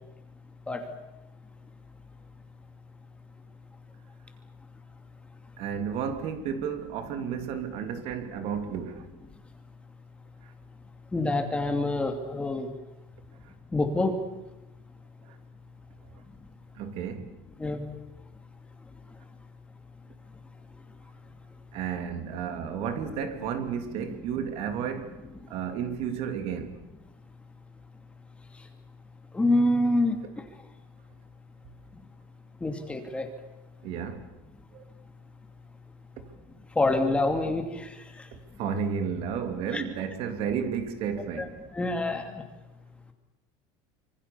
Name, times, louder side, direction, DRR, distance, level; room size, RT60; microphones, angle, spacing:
voice 1, 5.6-9.1 10.4-10.5 13.4-13.5 15.2-15.4 16.7-17.3 21.7-25.2 25.5-26.8 33.8-34.3 34.7-34.9 38.3-41.6, right 7 dB, 50° right, 2.9 m, -32 dB
voice 2, 11.1-12.7 13.7-14.2 17.6-17.8 29.3-30.2 32.6-33.3 36.8-37.9 39.7-39.8 41.4-41.5 41.7-42.3, left 2 dB, 10° left, 2.7 m, -26 dB
26.0 x 24.5 x 7.1 m
cardioid pair, 165°, 12 cm